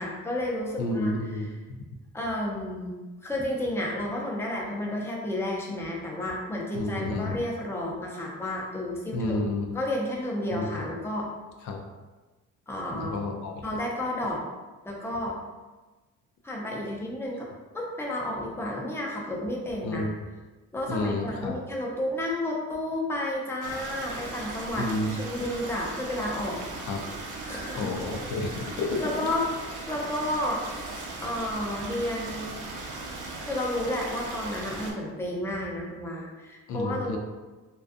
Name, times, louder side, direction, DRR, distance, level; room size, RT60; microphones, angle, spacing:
voice 1, 0.0-1.1 2.1-2.9 3.2-9.3 9.7-11.3 12.7-13.2 13.6-14.4 14.8-15.3 16.4-17.5 17.7-20.1 20.7-26.6 27.5-27.8 28.5-28.7 29.0-29.5 29.9-30.7 31.2-32.6 33.4-37.2, left 1 dB, 10° left, -2 dB, 0.5 m, -31 dB
voice 2, 0.8-1.5 6.7-7.4 9.1-9.7 10.5-10.9 11.6-11.8 12.9-13.8 19.8-20.2 20.9-21.6 24.8-25.2 26.8-27.0 27.7-29.0 36.7-37.2, left 2 dB, 75° left, 2 dB, 0.4 m, -30 dB
Stream, 23.6-34.9, right 2 dB, 80° right, 0.6 m, -38 dB
2.5 x 2.3 x 2.4 m, 1.2 s
cardioid pair, 90°, 30 cm